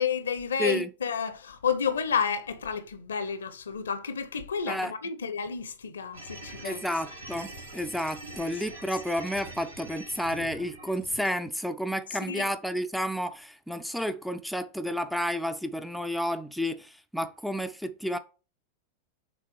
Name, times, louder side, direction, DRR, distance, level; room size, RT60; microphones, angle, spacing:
voice 1, 0.0-6.8 12.3-12.5, left 6 dB, 70° left, 0.7 m, -31 dB
voice 2, 0.6-0.9 4.7-4.9 6.6-18.2, equal, ahead, 0.4 m, -31 dB
sound 1, 6.1-11.3, right 1 dB, 75° right, 2.0 m, -44 dB
6.2 x 3.7 x 4.6 m
figure-of-eight pair, 90°, 0 cm